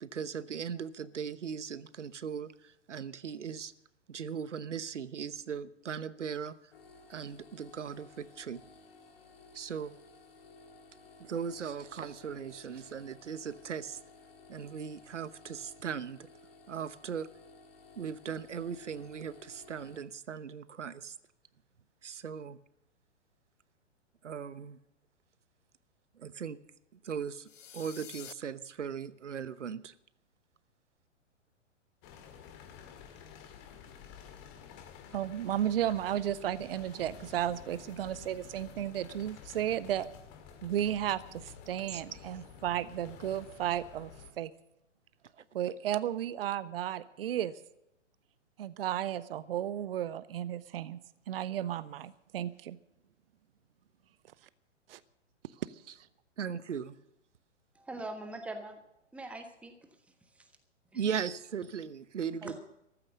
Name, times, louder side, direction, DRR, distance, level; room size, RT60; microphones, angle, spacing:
voice 1, 0.0-3.7 4.1-6.5 7.1-8.6 9.5-9.9 11.2-14.0 14.5-16.2 16.7-17.3 18.0-21.1 22.0-22.6 24.2-24.8 26.2-26.6 27.0-27.5 27.7-29.9 41.9-42.0 56.4-56.9 60.9-62.6, right 7 dB, 70° right, 16 dB, 1.0 m, -38 dB
sound 1, 6.7-20.0, left 3 dB, 50° left, 2.6 m, -56 dB
sound 2, 27.5-28.3, left 8 dB, 80° left, 0.6 m, -48 dB
sound 3, 32.0-44.3, left 8 dB, 30° left, 2.3 m, -51 dB
voice 2, 35.1-40.1 40.6-44.1 44.4-44.5 45.5-47.5 48.6-51.0 51.3-52.8 54.9-55.0 55.6-55.8, right 11 dB, 50° right, 18 dB, 0.7 m, -33 dB
voice 3, 57.7-58.8 59.1-59.7 60.3-60.5 60.9-61.0 62.4-62.6, right 2 dB, 5° right, 7 dB, 1.3 m, -42 dB
14.5 x 13.0 x 6.6 m, 0.82 s
figure-of-eight pair, 115°, 37 cm